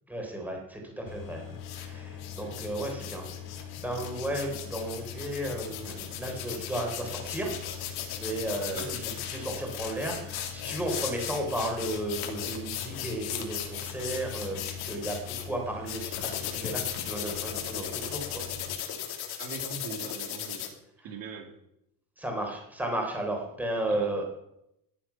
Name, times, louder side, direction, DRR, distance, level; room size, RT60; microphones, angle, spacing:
voice 1, 0.1-1.5 1.8-18.5 21.0-21.1 22.2-24.2, right 1 dB, 5° right, 1 dB, 3.6 m, -34 dB
sound 1, 1.1-18.8, left 8 dB, 60° left, 2.5 m, -43 dB
sound 2, 1.6-1.9 2.2-15.4 15.9-20.7, left 10 dB, 85° left, 2.8 m, -37 dB
voice 2, 8.6-9.2 19.4-20.7 21.0-21.5 23.9-24.1, right 4 dB, 65° right, 4 dB, 2.4 m, -42 dB
14.5 x 11.0 x 5.7 m, 0.78 s
cardioid pair, 170°, 37 cm